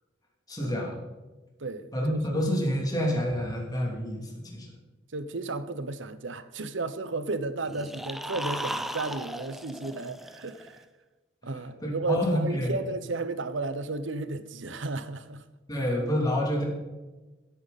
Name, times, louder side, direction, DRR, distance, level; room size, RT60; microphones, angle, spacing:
voice 1, 0.5-1.0 1.9-4.7 11.4-12.8 15.7-16.6, equal, 20° left, 2.9 m, -28 dB
voice 2, 1.6-2.4 5.1-10.8 11.4-15.4, right 3 dB, 75° right, 0.9 m, -33 dB
sound 1, 7.6-10.8, equal, ahead, 0.5 m, -36 dB
17.0 x 8.7 x 4.2 m
head